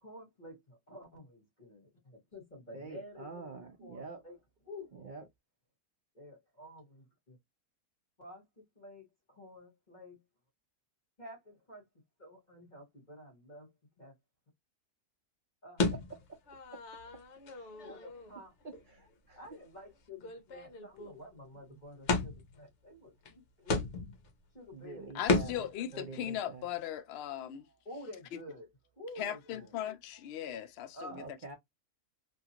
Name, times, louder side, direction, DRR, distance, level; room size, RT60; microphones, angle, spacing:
voice 1, 0.0-4.4 4.6-4.9 6.1-7.4 8.2-10.2 11.2-11.9 12.2-13.7 14.0-14.1 15.6-15.9 17.8-18.5 19.3-23.8 24.5-25.7 27.8-28.7 29.0-29.8 30.9-31.2, left 1 dB, 30° left, 1.3 m, -50 dB
voice 2, 2.7-4.2 4.9-5.2 16.7-16.8 17.5-17.7 18.6-19.4 21.7-21.8 24.7-26.7 31.1-31.6, right 4 dB, 55° right, 0.5 m, -47 dB
sound 1, 15.8-18.4 18.7-18.8 19.4-19.6 19.9-20.0 20.2-21.1 22.1-22.6 23.3-23.4 23.7-24.3 25.3-25.7, left 3 dB, 55° left, 0.9 m, -34 dB
voice 3, 25.1-27.7 29.2-31.2, left 10 dB, 70° left, 0.5 m, -38 dB
2.8 x 2.4 x 2.8 m
omnidirectional pair, 1.6 m